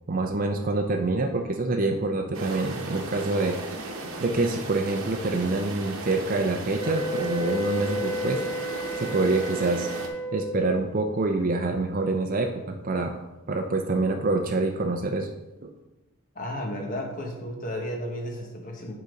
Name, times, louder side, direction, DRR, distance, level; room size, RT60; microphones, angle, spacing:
voice 1, 0.1-3.6 4.2-8.4 9.0-9.9 10.3-13.1 13.5-15.3 15.6-15.7, right 3 dB, 40° right, 3 dB, 0.5 m, -26 dB
sound 1, 2.3-10.1, right 2 dB, 60° right, 1.0 m, -36 dB
sound 2, 6.7-10.7, equal, 70° left, 2.2 m, -32 dB
voice 2, 16.3-18.9, equal, 35° left, 1 dB, 1.2 m, -33 dB
8.2 x 3.9 x 5.1 m, 1.0 s
head